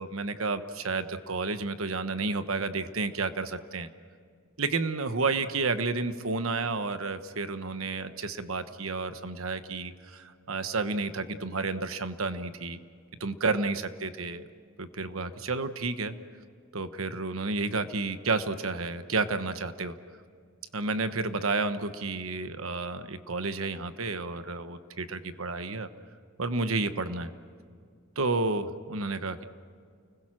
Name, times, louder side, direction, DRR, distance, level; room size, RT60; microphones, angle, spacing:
voice 1, 0.0-3.9 4.6-12.8 13.2-14.5 14.8-16.1 16.7-19.9 20.7-25.9 26.4-27.3 28.2-29.4, right 3 dB, 75° right, 10 dB, 1.2 m, -31 dB
30.0 x 20.5 x 6.2 m, 2.2 s
head